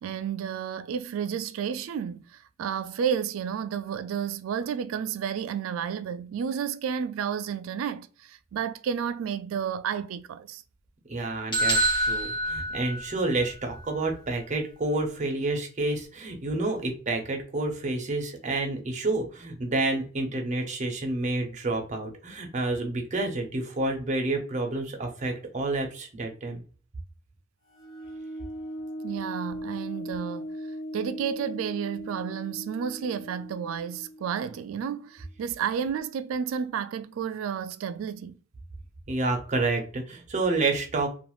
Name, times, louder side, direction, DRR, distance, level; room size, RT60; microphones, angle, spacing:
voice 1, 0.0-10.6 29.0-30.5 30.9-38.4, right 7 dB, 75° right, 0.3 m, -31 dB
voice 2, 11.1-26.6 39.1-41.1, right 2 dB, 35° right, 0.7 m, -29 dB
sound 1, 11.5-13.5, right 1 dB, 25° left, 0.9 m, -26 dB
sound 2, 27.7-35.1, equal, 65° left, 1.2 m, -39 dB
2.5 x 2.3 x 2.9 m
head